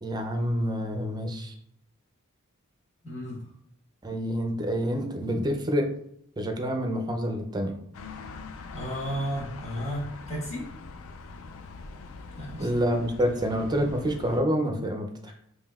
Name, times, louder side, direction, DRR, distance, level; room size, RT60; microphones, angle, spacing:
voice 1, 0.0-1.5 4.0-5.9 6.4-7.8 12.6-15.3, equal, 20° right, 4 dB, 0.4 m, -27 dB
voice 2, 3.0-3.5 8.7-10.7 12.4-12.8 15.3-15.4, equal, 30° left, -5 dB, 1.4 m, -33 dB
sound 1, 7.9-14.4, left 4 dB, 65° left, 0.3 m, -43 dB
5.2 x 2.6 x 2.3 m, 0.73 s
head